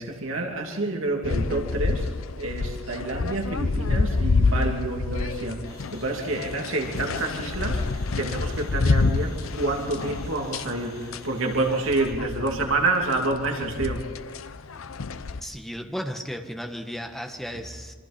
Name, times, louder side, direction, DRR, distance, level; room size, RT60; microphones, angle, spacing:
voice 1, 0.0-2.1 2.4-5.6 5.9-14.1, right 2 dB, 75° right, 1 dB, 2.9 m, -28 dB
sound 1, 1.2-15.4, left 3 dB, 85° left, 0.8 m, -28 dB
sound 2, 5.6-12.1, left 1 dB, 15° left, 4.9 m, -47 dB
voice 2, 15.4-17.9, equal, ahead, 4 dB, 1.6 m, -34 dB
27.0 x 25.5 x 4.4 m, 1.4 s
head